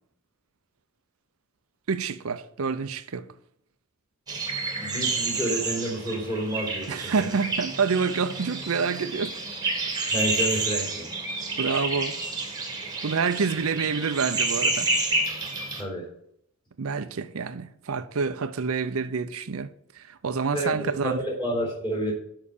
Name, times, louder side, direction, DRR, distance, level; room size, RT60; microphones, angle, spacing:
voice 1, 1.9-3.3 6.9-9.3 11.6-12.2 13.0-14.9 16.8-19.7 19.9-21.2, right 5 dB, 85° right, 0.6 m, -27 dB
sound 1, 4.3-15.8, right 3 dB, 20° right, 1.4 m, -29 dB
voice 2, 4.8-7.3 10.1-11.1 15.8-16.1 20.5-22.2, right 1 dB, 20° left, 3.7 m, -30 dB
7.3 x 5.8 x 6.6 m
head